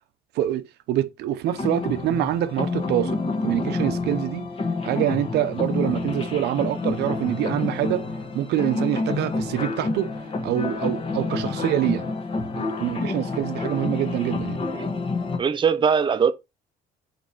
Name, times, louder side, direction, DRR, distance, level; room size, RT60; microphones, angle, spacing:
voice 1, 0.3-4.5 4.8-8.0 8.3-10.1 10.4-12.1 12.5-14.6, right 12 dB, 80° right, 0.8 m, -25 dB
sound 1, 1.5-15.4, left 3 dB, 35° left, 1.4 m, -28 dB
voice 2, 15.4-16.3, right 6 dB, 30° right, 0.7 m, -21 dB
5.3 x 4.5 x 4.5 m
cardioid pair, 110°, 17 cm